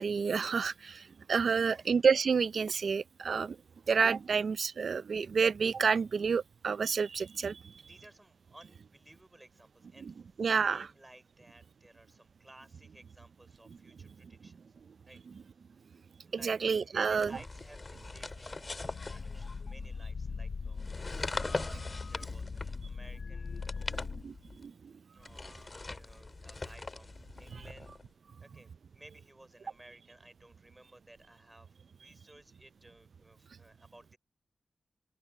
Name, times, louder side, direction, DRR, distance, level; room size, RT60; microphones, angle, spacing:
voice 1, 0.0-3.6 3.9-7.7 10.4-10.9 16.3-17.4 21.4-21.5 23.9-24.9 27.5-27.6, right 5 dB, 70° right, 0.4 m, -29 dB
voice 2, 1.6-2.0 4.2-4.5 7.8-14.6 15.0-15.2 15.9-16.5 16.8-24.2 25.1-27.9 28.4-34.2, right 1 dB, 15° right, 5.1 m, -58 dB
sound 1, 17.1-19.9 20.7-23.0 23.5-24.6 25.2-28.1, left 3 dB, 35° left, 2.2 m, -41 dB
sound 2, 18.8-24.2, left 5 dB, 60° left, 0.6 m, -41 dB
open air
wide cardioid pair, 110°, 0 cm